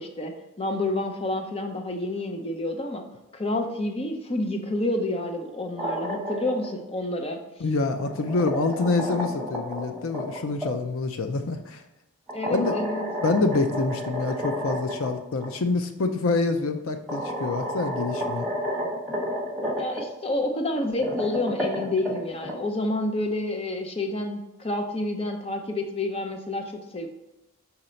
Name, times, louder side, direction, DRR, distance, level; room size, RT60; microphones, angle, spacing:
voice 1, 0.0-3.1 3.3-7.4 12.3-13.0 19.8-27.1, left 2 dB, 25° left, 4 dB, 0.6 m, -29 dB
sound 1, 5.5-6.7 7.8-10.7 12.3-15.1 15.4-15.5 16.6-16.7 17.1-20.0 20.8-22.5, equal, ahead, 1.5 m, -31 dB
voice 2, 7.6-11.8 12.5-12.7 13.2-18.5, left 3 dB, 65° left, 8 dB, 0.5 m, -26 dB
5.9 x 4.3 x 5.1 m, 0.93 s
head